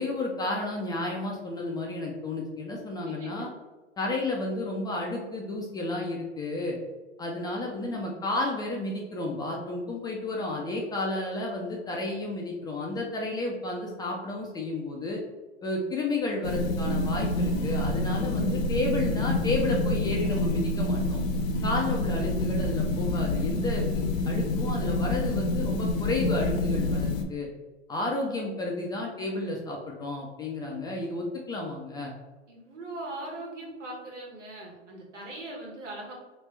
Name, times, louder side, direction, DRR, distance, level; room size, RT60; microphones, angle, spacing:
voice 1, 0.0-3.5 4.0-6.8 7.2-15.2 15.6-21.2 21.6-27.5 27.9-32.1, left 2 dB, 10° left, -1 dB, 0.3 m, -32 dB
voice 2, 3.1-3.5 32.5-36.1, right 2 dB, 85° right, -2 dB, 1.4 m, -40 dB
sound 1, 16.4-27.2, left 2 dB, 45° left, 0.7 m, -27 dB
3.2 x 3.1 x 3.2 m, 1.2 s
hypercardioid pair, 105°, 35 cm